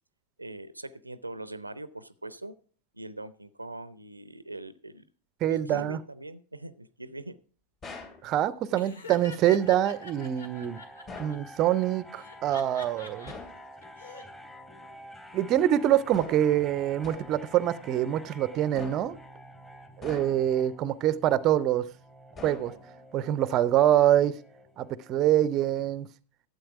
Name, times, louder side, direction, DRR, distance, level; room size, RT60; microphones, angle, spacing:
voice 1, 0.4-2.6 2.9-5.0 5.5-7.4, right 2 dB, 85° right, 16 dB, 0.6 m, -41 dB
voice 2, 5.4-6.0 8.2-10.8 11.2-13.3 15.3-19.2 20.0-21.8 22.4-22.7 23.1-24.3 24.8-26.1, right 12 dB, 35° right, 17 dB, 0.6 m, -25 dB
sound 1, 7.8-8.3 11.1-11.5 13.3-13.6 16.1-16.5 17.0-17.4 18.7-19.2 20.0-20.6 22.4-23.0, left 4 dB, 30° left, 2.8 m, -44 dB
Laughter, 8.7-11.3 12.2-13.3 13.8-14.2, left 4 dB, 70° left, 1.8 m, -45 dB
sound 2, 9.6-25.3, equal, 10° left, 1.5 m, -49 dB
12.0 x 8.0 x 4.8 m, 0.42 s
figure-of-eight pair, 90°, 0 cm